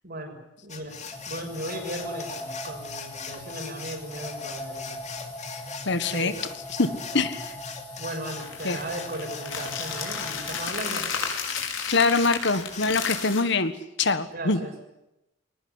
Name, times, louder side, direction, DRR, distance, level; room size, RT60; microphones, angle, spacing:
voice 1, 0.0-1.0 1.2-5.0 6.1-6.4 8.0-11.1 14.3-14.9, right 1 dB, 50° right, 3 dB, 6.6 m, -36 dB
sound 1, 0.7-13.2, left 6 dB, 40° left, 2.9 m, -41 dB
sound 2, 1.1-10.7, left 1 dB, 15° left, 2.6 m, -40 dB
voice 2, 5.8-6.3 6.7-6.9 7.1-7.6 8.6-8.8 11.9-13.7 14.0-14.6, left 3 dB, 65° left, 12 dB, 1.6 m, -24 dB
sound 3, 8.4-13.4, left 6 dB, 80° left, 5.3 m, -33 dB
22.0 x 19.0 x 9.8 m, 0.89 s
head